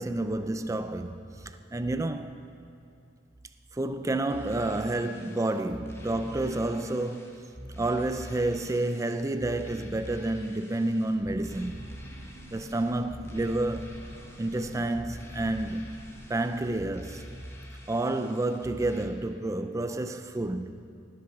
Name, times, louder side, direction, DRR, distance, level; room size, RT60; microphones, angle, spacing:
voice 1, 0.0-2.4 3.7-12.0 12.5-14.0 14.4-16.0 16.3-17.3 17.9-20.8, right 2 dB, 15° right, 0.4 m, -30 dB
sound 1, 4.3-19.0, equal, 15° left, 1.2 m, -45 dB
Breathing / Train, 11.0-16.6, right 1 dB, 35° right, 2.5 m, -50 dB
19.0 x 8.0 x 5.9 m
head